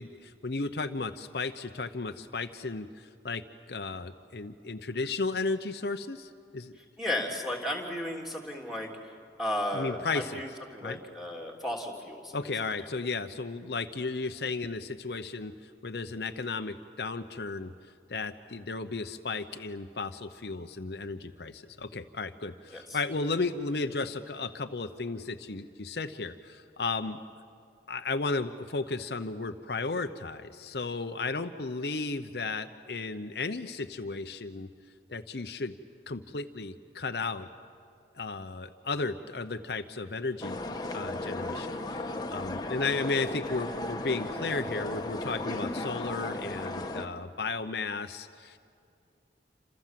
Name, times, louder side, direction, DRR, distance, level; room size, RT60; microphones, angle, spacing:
voice 1, 0.0-6.7 9.7-10.4 10.8-11.0 12.3-17.7 18.1-27.2 27.9-34.7 35.1-35.7 36.1-37.5 38.1-40.6 40.9-48.6, left 3 dB, 65° left, 8 dB, 0.8 m, -34 dB
voice 2, 7.0-8.9 9.4-12.3 22.7-23.0, left 1 dB, ahead, 0 dB, 3.3 m, -34 dB
sound 1, 40.4-47.1, left 2 dB, 25° left, 1.3 m, -35 dB
28.0 x 26.5 x 7.6 m, 2.5 s
head